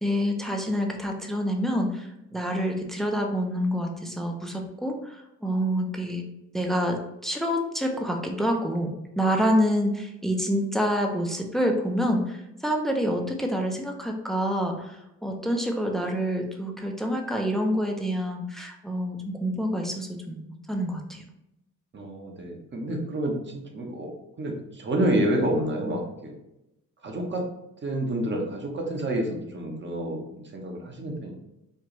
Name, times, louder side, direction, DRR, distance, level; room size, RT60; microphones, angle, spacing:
voice 1, 0.0-6.2 6.5-21.2, equal, ahead, 2 dB, 0.6 m, -27 dB
voice 2, 21.9-24.1 24.4-26.3 27.0-27.4 27.8-31.3, right 1 dB, 40° right, 1 dB, 1.0 m, -28 dB
4.5 x 2.4 x 3.1 m, 0.86 s
cardioid pair, 90°, 30 cm